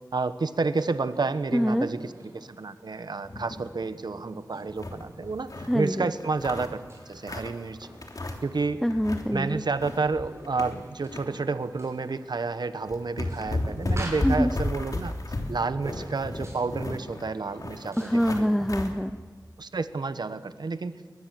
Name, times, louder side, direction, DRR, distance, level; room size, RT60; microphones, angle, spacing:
voice 1, 0.1-6.8 7.1-7.9 8.4-8.8 9.3-15.1 15.5-18.7 19.6-20.9, right 4 dB, 75° right, 12 dB, 1.1 m, -30 dB
sound 1, 0.7-18.3, right 1 dB, 40° right, 7.2 m, -49 dB
voice 2, 1.5-1.9 5.7-6.1 8.8-9.6 14.2-14.5 18.0-19.2, equal, ahead, 10 dB, 0.7 m, -25 dB
sound 2, 3.2-3.7 4.1-4.2 4.5-5.8 6.2-7.6 8.0-8.6 8.9-9.3 9.6-11.2 11.6-11.8 12.5-12.6 12.9-18.9, left 2 dB, 55° left, 3.2 m, -33 dB
22.5 x 20.0 x 7.7 m, 1.5 s
wide cardioid pair, 55°, 7 cm